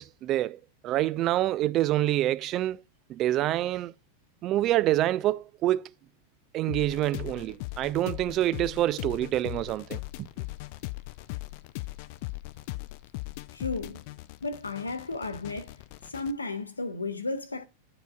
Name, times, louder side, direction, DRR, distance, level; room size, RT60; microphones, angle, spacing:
voice 1, 0.0-2.8 3.1-3.9 4.4-5.9 6.5-10.3, right 14 dB, 35° right, 0.3 m, -27 dB
sound 1, 6.7-16.3, left 21 dB, 45° left, 0.4 m, -39 dB
voice 2, 13.5-14.0 14.4-15.7 16.1-17.7, left 3 dB, 80° left, 0.7 m, -33 dB
10.0 x 5.0 x 2.3 m
figure-of-eight pair, 90°, 0 cm